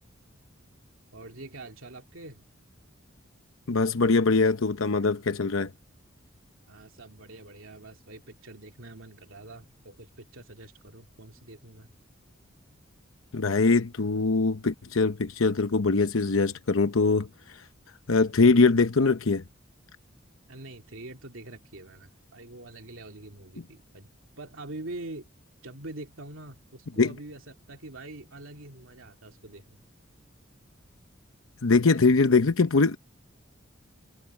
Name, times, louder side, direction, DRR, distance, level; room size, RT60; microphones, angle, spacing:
voice 1, 1.1-2.4 6.7-11.9 20.5-24.1 24.4-25.3 25.6-29.8, right 2 dB, 85° right, 2.6 m, -44 dB
voice 2, 3.7-5.7 13.3-17.6 18.1-19.4 27.0-27.1 31.6-33.0, left 3 dB, 85° left, 0.8 m, -22 dB
head